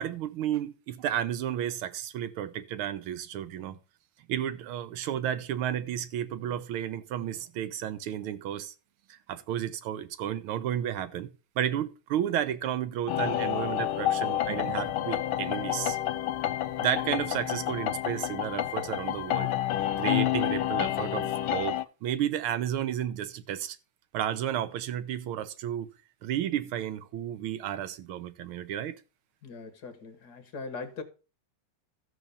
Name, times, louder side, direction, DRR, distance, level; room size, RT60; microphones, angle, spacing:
voice 1, 0.0-3.8 4.3-8.7 9.1-11.3 11.6-16.0 16.8-19.5 19.8-23.8 24.1-25.9 26.2-29.0, right 10 dB, 90° right, 1.7 m, -32 dB
sound 1, 13.1-21.8, left 12 dB, 85° left, 1.5 m, -29 dB
voice 2, 29.4-31.0, left 4 dB, 55° left, 1.8 m, -40 dB
13.5 x 4.6 x 6.9 m
omnidirectional pair, 2.3 m